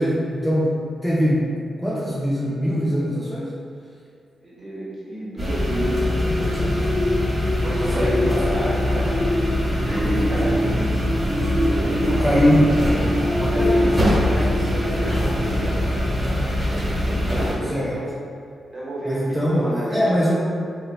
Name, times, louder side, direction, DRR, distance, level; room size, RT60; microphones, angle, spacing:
voice 1, 0.0-1.5 1.8-3.5 7.9-8.2 12.2-12.7 17.6-18.0 19.0-20.4, equal, 5° right, -8 dB, 0.4 m, -22 dB
voice 2, 4.4-9.1 9.6-10.8 11.4-12.6 13.3-15.8 16.9-18.2 18.7-20.0, right 1 dB, 35° right, -7 dB, 0.9 m, -30 dB
sound 1, 5.4-17.5, left 1 dB, 20° right, 1.2 m, -23 dB
sound 2, 5.5-15.4 15.8-16.0, left 1 dB, 45° left, 1.0 m, -26 dB
2.8 x 2.0 x 2.3 m, 2.3 s
cardioid pair, 60°, 0 cm